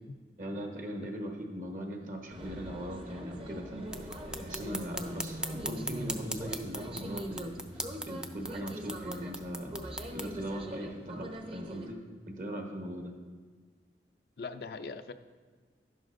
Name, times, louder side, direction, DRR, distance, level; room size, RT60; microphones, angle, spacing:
voice 1, 0.4-4.1 4.4-7.7 8.1-9.7 10.1-12.0 12.3-13.1, equal, 50° right, 2 dB, 1.2 m, -39 dB
sound 1, 2.3-11.9, equal, 30° right, 0.8 m, -42 dB
sound 2, 3.9-10.3, right 1 dB, 5° right, 0.3 m, -41 dB
voice 2, 14.4-15.1, left 4 dB, 60° left, 9 dB, 0.4 m, -41 dB
11.0 x 11.0 x 2.6 m, 1.5 s
head